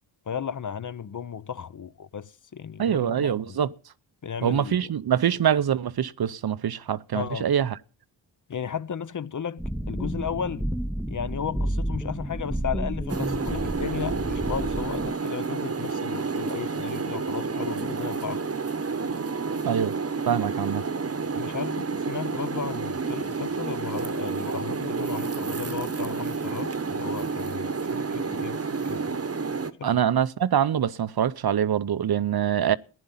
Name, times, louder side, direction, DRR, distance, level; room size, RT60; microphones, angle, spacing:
voice 1, 0.3-3.6 4.2-4.8 7.1-7.5 8.5-10.6 11.1-18.4 21.3-29.2 29.8-29.9, left 7 dB, 40° left, 0.7 m, -35 dB
voice 2, 2.8-3.7 4.4-7.8 19.6-20.0 20.3-20.8 29.8-32.8, right 9 dB, 50° right, 0.7 m, -24 dB
sound 1, 9.6-15.1, equal, ahead, 0.7 m, -30 dB
sound 2, 13.1-29.7, right 4 dB, 30° right, 1.0 m, -30 dB
15.5 x 10.5 x 5.6 m
cardioid pair, 65°, 47 cm